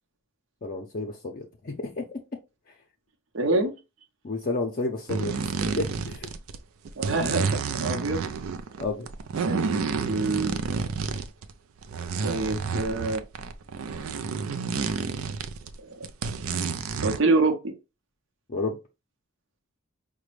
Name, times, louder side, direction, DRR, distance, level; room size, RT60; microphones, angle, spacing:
voice 1, 0.6-2.2 4.2-6.3 8.8-9.1 18.5-18.8, left 3 dB, 45° left, 0.5 m, -31 dB
voice 2, 3.3-3.7 7.0-8.3 9.4-9.7 10.0-10.6 12.2-13.2 15.9-16.0 17.0-17.7, right 3 dB, 60° right, 0.8 m, -26 dB
sound 1, 5.1-6.6 6.8-11.5 11.8-15.8 16.0-17.2, right 5 dB, 90° right, 0.4 m, -30 dB
5.0 x 2.2 x 3.1 m
head